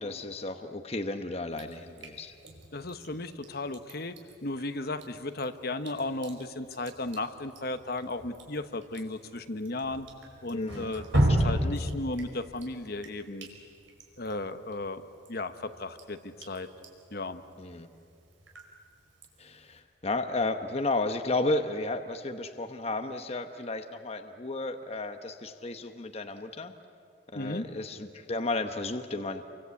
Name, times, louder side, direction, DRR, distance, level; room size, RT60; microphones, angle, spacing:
voice 1, 0.0-2.3 10.5-10.9 11.2-11.5 17.6-17.9 19.4-26.7 27.3-29.4, left 2 dB, 30° left, 6 dB, 1.0 m, -33 dB
Drip, 1.5-19.8, right 1 dB, 80° right, 5.2 m, -36 dB
voice 2, 2.7-4.1 4.4-10.1 10.4-13.5 14.2-15.0 15.3-16.7 17.1-17.4 27.3-27.6, left 2 dB, 50° left, 9 dB, 1.1 m, -35 dB
29.0 x 24.5 x 8.4 m, 2.4 s
head